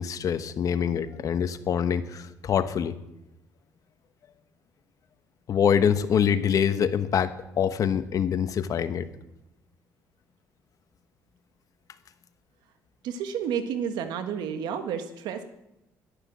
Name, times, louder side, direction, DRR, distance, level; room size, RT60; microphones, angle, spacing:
voice 1, 0.0-3.0 5.5-9.1, left 8 dB, 50° left, 11 dB, 1.1 m, -25 dB
voice 2, 13.0-15.4, right 7 dB, 80° right, 8 dB, 1.5 m, -31 dB
12.0 x 11.5 x 7.5 m, 0.89 s
cardioid pair, 90°, 7 cm